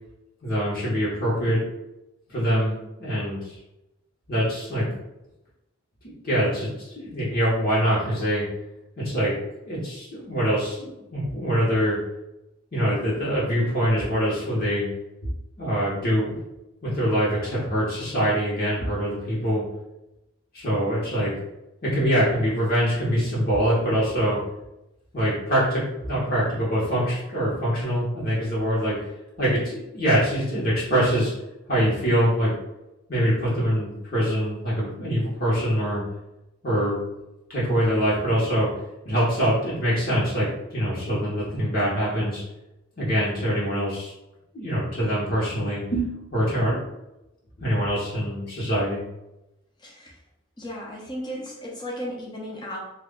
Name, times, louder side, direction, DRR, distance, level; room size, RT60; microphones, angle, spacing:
voice 1, 0.4-1.6 2.3-3.6 4.3-5.0 6.2-8.4 9.0-9.4 9.7-12.0 12.7-14.9 15.2-15.3 15.6-16.3 16.8-19.6 20.5-21.4 21.8-24.4 25.1-29.1 29.4-31.3 31.7-32.5 33.1-36.0 36.6-37.0 37.5-38.7 39.0-42.4 43.0-44.1 44.5-46.8 47.6-49.0, equal, 45° left, -7 dB, 1.1 m, -24 dB
voice 2, 49.8-50.2 50.6-52.8, equal, 20° left, -3 dB, 0.7 m, -35 dB
3.0 x 2.4 x 3.7 m, 0.91 s
head